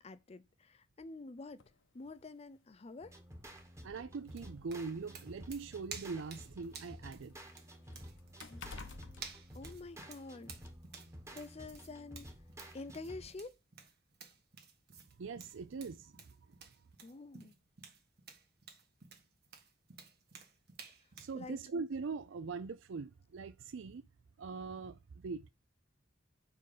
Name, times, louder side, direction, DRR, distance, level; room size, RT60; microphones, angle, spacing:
voice 1, 0.0-3.2 8.5-8.9 9.5-10.5 11.3-12.3 12.7-13.5 17.0-17.5 21.3-21.6, left 3 dB, 30° left, 0.5 m, -48 dB
sound 1, 1.6-1.8 2.8-2.9 3.4-3.5 4.4-6.4 6.8-10.2 10.6-10.8, left 4 dB, 65° left, 0.7 m, -52 dB
sound 2, 3.0-13.5, equal, 15° right, 1.2 m, -53 dB
voice 2, 3.8-7.4 15.2-16.4 21.2-24.0 24.4-25.5, right 4 dB, 75° right, 0.4 m, -42 dB
sound 3, 4.3-21.4, right 6 dB, 55° right, 1.3 m, -53 dB
5.0 x 4.6 x 4.8 m
head